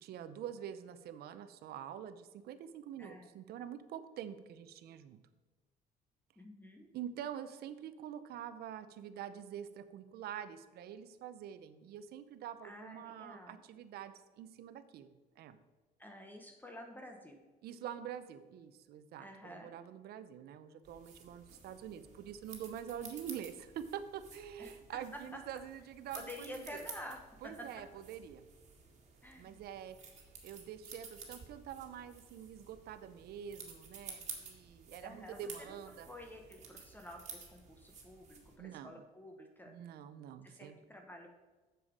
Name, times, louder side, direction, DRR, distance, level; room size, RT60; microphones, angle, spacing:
voice 1, 0.0-5.2 6.9-15.6 17.6-26.3 26.5-26.6 27.4-28.4 29.4-30.0 30.4-36.1 38.6-39.0 39.6-40.8, right 9 dB, 70° right, 12 dB, 0.6 m, -46 dB
voice 2, 3.0-3.3 6.4-6.9 12.6-13.6 16.0-17.4 19.2-19.7 24.6-25.4 26.1-27.7 29.2-29.6 35.0-35.8 36.1-39.7 40.4-41.3, left 1 dB, 10° left, 3 dB, 0.9 m, -50 dB
sound 1, 20.8-38.6, right 5 dB, 45° right, 1.9 m, -53 dB
7.1 x 7.0 x 5.0 m, 1.2 s
cardioid pair, 110°, 17 cm